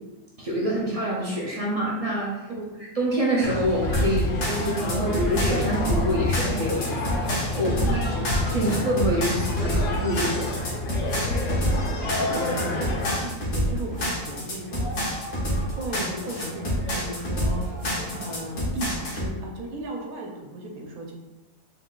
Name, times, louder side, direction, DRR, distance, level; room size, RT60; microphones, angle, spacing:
voice 1, 0.4-2.5 2.9-8.1 8.4-10.5, right 1 dB, 55° right, -4 dB, 0.4 m, -26 dB
sound 1, 3.4-13.2, left 2 dB, 65° left, 0.9 m, -28 dB
sound 2, 3.9-19.3, equal, 90° left, 1.6 m, -28 dB
voice 2, 7.6-8.3 11.6-14.9 15.8-17.7 18.2-21.1, right 2 dB, 85° right, 1 dB, 1.2 m, -36 dB
sound 3, 13.6-18.6, equal, 50° left, 0.6 m, -41 dB
3.9 x 2.3 x 3.7 m, 1.1 s
omnidirectional pair, 1.5 m